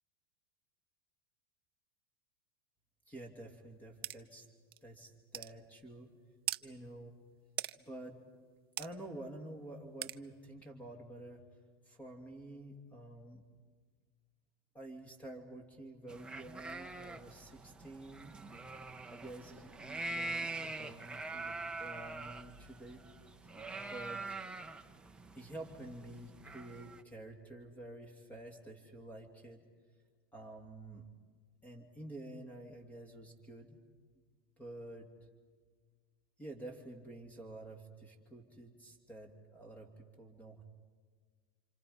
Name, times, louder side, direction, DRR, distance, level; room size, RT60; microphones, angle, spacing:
voice 1, 3.1-4.5 4.8-6.1 6.6-7.2 7.8-8.2 8.8-11.4 11.8-13.4 14.7-18.4 19.1-23.0 23.9-24.4 25.3-29.6 30.3-31.1 31.6-33.8 34.6-35.1 36.4-40.6, right 1 dB, 10° left, 4 dB, 2.7 m, -49 dB
sound 1, 4.0-4.2 4.7-4.8 5.3-5.5 6.5-6.6 7.6-7.7 8.8-8.9 10.0-10.2, right 14 dB, 85° right, 0.7 m, -38 dB
sound 2, 16.1-27.0, right 2 dB, 5° right, 1.1 m, -44 dB
28.5 x 26.5 x 5.5 m, 1.5 s
supercardioid pair, 120°, 12 cm